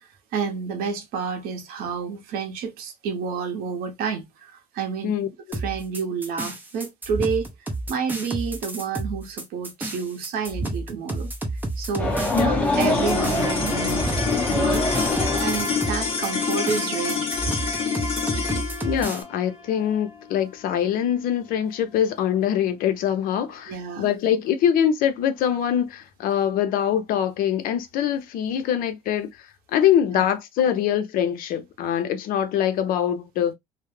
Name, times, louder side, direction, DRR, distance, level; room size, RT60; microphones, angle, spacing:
voice 1, 0.3-5.2 5.5-7.5 7.9-11.3 11.8-17.3 23.7-24.1 30.1-30.2, right 6 dB, 80° right, 0.7 m, -30 dB
voice 2, 5.0-5.6 12.3-12.9 18.8-29.3 29.7-33.5, left 9 dB, 75° left, 0.5 m, -24 dB
sound 1, 5.5-19.2, right 2 dB, 10° right, 0.6 m, -31 dB
sound 2, 12.0-16.4, left 1 dB, 10° left, 0.9 m, -25 dB
sound 3, 12.7-23.2, left 5 dB, 40° left, 1.0 m, -28 dB
2.3 x 2.0 x 3.1 m
cardioid pair, 115°, 15 cm